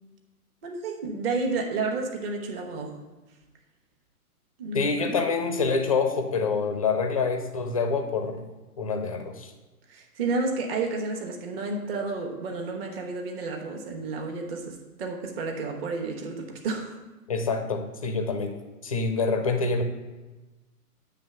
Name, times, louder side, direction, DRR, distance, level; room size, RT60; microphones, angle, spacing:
voice 1, 0.6-3.0 4.6-5.2 9.9-16.9, right 3 dB, 40° right, 2 dB, 1.2 m, -31 dB
voice 2, 4.7-8.4 8.8-9.5 17.3-18.6 18.8-19.8, left 4 dB, 25° left, 6 dB, 0.4 m, -26 dB
9.0 x 3.3 x 6.7 m, 1.2 s
hypercardioid pair, 145°, 46 cm